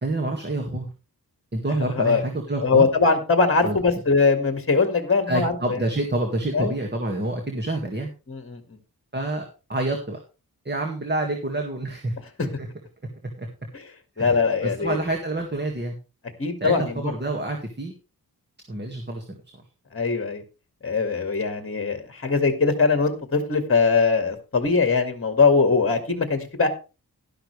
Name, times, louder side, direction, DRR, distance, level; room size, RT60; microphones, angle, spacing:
voice 1, 0.0-0.9 1.5-2.9 3.6-3.8 5.3-8.1 9.1-10.2 10.7-12.1 12.4-12.7 13.4-13.5 14.2-16.0 16.6-17.9 18.7-19.4, right 2 dB, 30° right, 2 dB, 2.0 m, -28 dB
voice 2, 2.6-5.8 6.5-6.7 8.3-8.6 13.7-13.8 14.2-15.0 16.4-16.9 19.9-20.4 20.8-26.7, left 4 dB, 35° left, 7 dB, 1.9 m, -21 dB
12.0 x 11.5 x 3.3 m, 0.30 s
wide cardioid pair, 110°, 37 cm